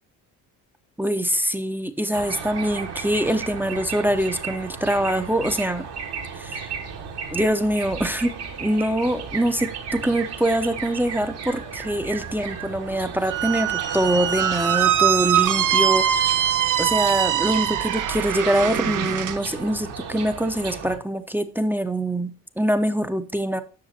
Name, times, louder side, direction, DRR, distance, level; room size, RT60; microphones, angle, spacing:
voice 1, 1.0-5.9 6.3-6.7 7.3-8.3 8.6-16.4 16.8-23.6, right 1 dB, 5° right, 8 dB, 0.8 m, -24 dB
sound 1, 2.1-21.0, right 6 dB, 60° right, 1.7 m, -35 dB
Squeak, 13.3-19.4, right 10 dB, 40° right, 0.7 m, -22 dB
10.5 x 6.5 x 2.9 m, 0.38 s
hypercardioid pair, 45°, 47 cm